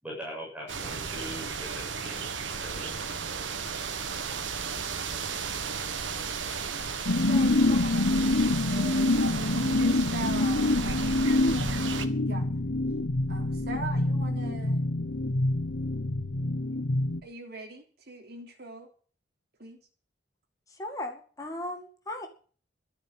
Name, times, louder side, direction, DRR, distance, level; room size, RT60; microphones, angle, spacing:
voice 1, 0.0-2.3 2.6-2.9, equal, 5° right, -4 dB, 7.8 m, -41 dB
sound 1, 0.7-12.1, right 5 dB, 80° right, 1.5 m, -34 dB
sound 2, 7.1-17.2, left 2 dB, 80° left, 1.2 m, -26 dB
voice 2, 7.2-11.3 11.8-12.5 13.3-14.8 17.2-18.9 19.6-19.8, right 2 dB, 55° right, 1 dB, 3.5 m, -42 dB
voice 3, 20.7-22.3, left 1 dB, 20° left, 3 dB, 2.1 m, -37 dB
13.0 x 10.5 x 7.5 m, 0.42 s
head